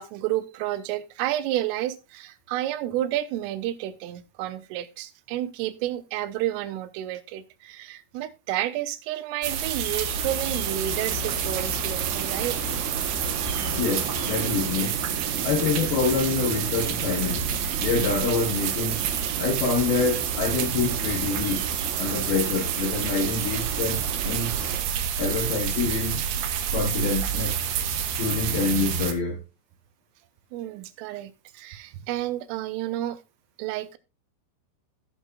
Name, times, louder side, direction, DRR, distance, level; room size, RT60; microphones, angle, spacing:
voice 1, 0.0-12.6 30.5-33.2 33.6-34.0, right 13 dB, 85° right, 3.4 m, -30 dB
sound 1, 9.4-29.1, right 7 dB, 70° right, 2.6 m, -28 dB
sound 2, 10.1-24.8, right 6 dB, 55° right, 2.3 m, -37 dB
voice 2, 13.8-15.0 15.4-17.4 17.8-19.0 19.4-21.6 22.0-24.5 25.2-26.2 26.7-27.6 28.1-29.4, left 4 dB, 70° left, 2.4 m, -26 dB
18.0 x 6.4 x 2.3 m
omnidirectional pair, 5.7 m